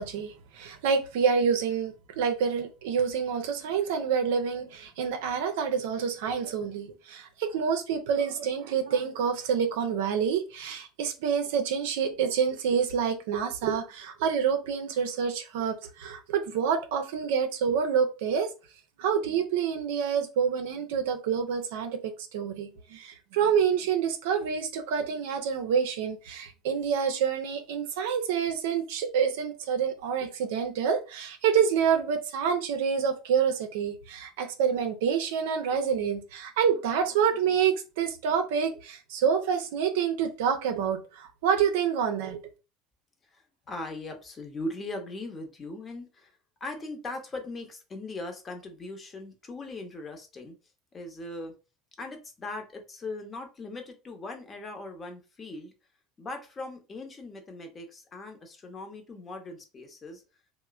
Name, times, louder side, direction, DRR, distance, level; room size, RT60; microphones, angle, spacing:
voice 1, 0.0-18.5 19.0-42.4, right 7 dB, 70° right, 0.5 m, -27 dB
voice 2, 43.3-46.3 46.6-50.6 50.9-51.5 52.0-55.7 56.2-60.2, left 2 dB, 30° left, 0.8 m, -39 dB
3.0 x 2.1 x 2.3 m
hypercardioid pair, 70°, 0 cm